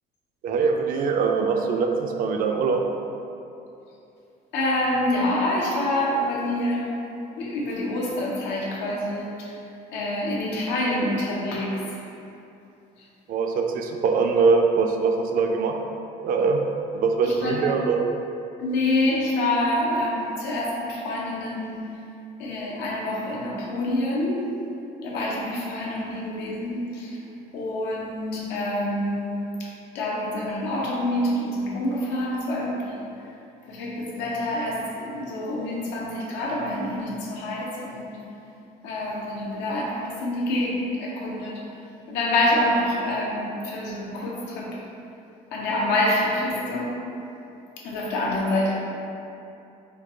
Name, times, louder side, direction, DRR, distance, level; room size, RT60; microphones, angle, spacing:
voice 1, 0.4-2.8 13.3-15.7 16.2-16.6 16.9-18.0, right 5 dB, 55° right, 3 dB, 0.4 m, -22 dB
voice 2, 4.5-6.9 7.4-9.6 9.9-11.8 13.0-13.1 17.2-17.7 18.6-21.9 22.4-24.5 25.0-27.2 27.5-33.0 33.7-38.2 38.8-41.6 42.1-44.8 45.5-46.9 47.8-48.8, left 1 dB, 90° left, -4 dB, 0.7 m, -26 dB
4.3 x 2.2 x 2.9 m, 2.8 s
cardioid pair, 110°, 17 cm